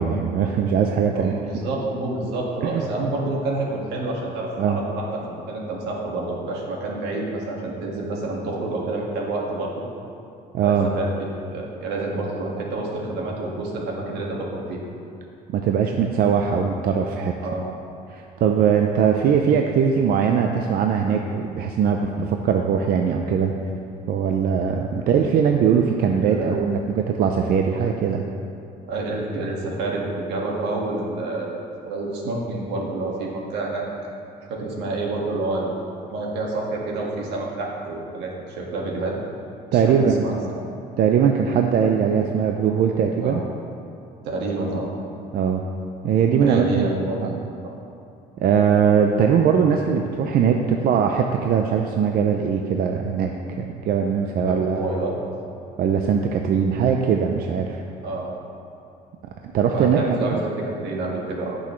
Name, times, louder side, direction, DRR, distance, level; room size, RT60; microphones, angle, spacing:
voice 1, 0.0-1.3 2.6-2.8 4.6-4.8 10.5-10.9 15.5-17.3 18.1-23.5 24.1-28.2 39.7-40.4 41.0-43.4 45.3-45.6 46.0-46.9 47.2-47.4 48.4-53.3 53.6-54.9 55.8-57.8 59.5-60.4, right 7 dB, 60° right, 3 dB, 0.6 m, -20 dB
voice 2, 1.1-9.7 10.6-14.8 17.4-17.7 25.0-25.1 26.2-26.6 27.9-28.0 28.9-33.8 34.5-39.2 39.7-40.6 43.2-43.4 44.2-44.9 46.4-47.4 47.6-47.7 54.1-55.1 58.0-58.3 59.7-61.6, right 2 dB, 85° right, -2 dB, 1.8 m, -28 dB
16.5 x 6.3 x 3.2 m, 2.5 s
cardioid pair, 110°, 17 cm